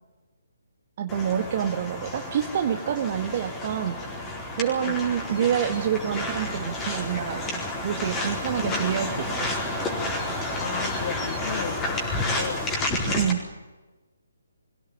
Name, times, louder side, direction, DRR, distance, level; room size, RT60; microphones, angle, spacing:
voice 1, 1.0-3.9 4.6-9.5 13.1-13.4, right 9 dB, 40° right, 6 dB, 1.5 m, -27 dB
sound 1, 1.1-13.3, left 2 dB, 15° left, 4.4 m, -30 dB
voice 2, 8.6-9.0 10.6-12.0 12.4-12.7, left 7 dB, 45° left, 11 dB, 1.7 m, -35 dB
23.0 x 17.0 x 9.7 m, 1.2 s
figure-of-eight pair, 145°, 0 cm